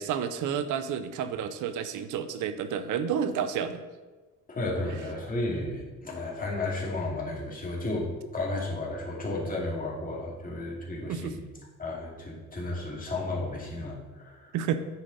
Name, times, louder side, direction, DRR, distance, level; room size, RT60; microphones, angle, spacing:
voice 1, 0.0-3.8 11.1-11.4 14.5-14.8, right 8 dB, 85° right, 11 dB, 0.7 m, -30 dB
voice 2, 4.5-11.4 11.8-14.5, left 2 dB, 30° left, -3 dB, 2.4 m, -33 dB
9.8 x 5.0 x 4.1 m, 1.3 s
cardioid pair, 90°, 30 cm